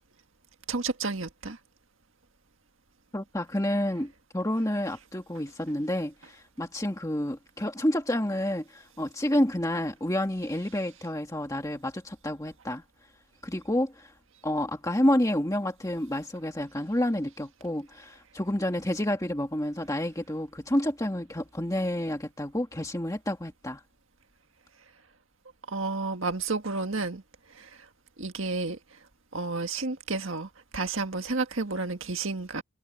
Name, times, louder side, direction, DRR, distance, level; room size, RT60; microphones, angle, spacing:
voice 1, 0.7-1.6 25.7-27.2 27.6-27.7 28.2-28.8 29.3-32.6, right 3 dB, 60° right, 1.8 m, -31 dB
voice 2, 3.1-12.8 13.4-14.1 14.4-23.8, left 1 dB, 15° left, 1.9 m, -29 dB
head